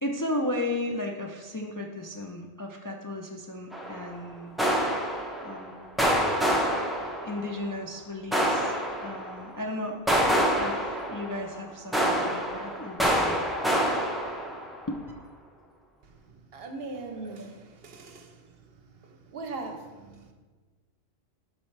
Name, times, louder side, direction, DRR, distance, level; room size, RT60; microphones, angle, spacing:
voice 1, 0.0-4.5 5.4-5.9 7.2-8.7 9.0-10.2 10.6-13.4 14.9-15.0 17.1-17.4, left 1 dB, 30° left, 0.4 m, -35 dB
sound 1, 3.7-4.1 4.6-5.7 6.0-7.6 8.3-9.5 10.1-11.6 11.9-14.8, equal, ahead, 0.7 m, -27 dB
voice 2, 16.5-18.3 19.3-20.3, right 3 dB, 65° right, 1.0 m, -39 dB
11.5 x 4.4 x 3.2 m
omnidirectional pair, 1.1 m